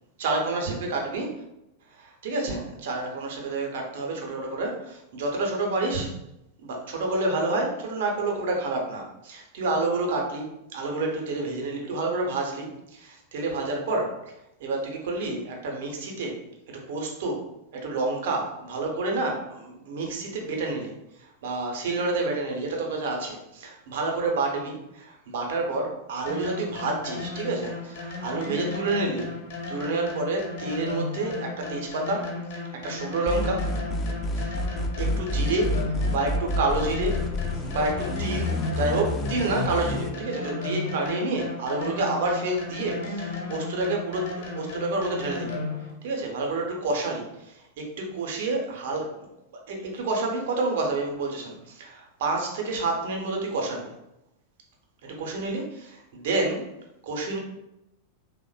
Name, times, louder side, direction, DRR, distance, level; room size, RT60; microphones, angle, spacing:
voice 1, 0.2-1.3 2.0-6.1 6.6-14.2 14.6-16.4 16.9-17.4 17.7-20.9 21.2-29.3 29.7-32.3 32.7-33.9 34.4-34.6 35.0-37.2 37.5-45.6 46.0-49.1 49.7-53.9 55.0-56.7 57.0-57.4, right 2 dB, 55° right, 1 dB, 0.6 m, -29 dB
sound 1, 26.3-45.9, left 3 dB, 55° left, 0.8 m, -35 dB
sound 2, 33.3-40.1, left 1 dB, 25° left, 0.3 m, -28 dB
3.1 x 2.0 x 2.2 m, 0.87 s
figure-of-eight pair, 90°, 0 cm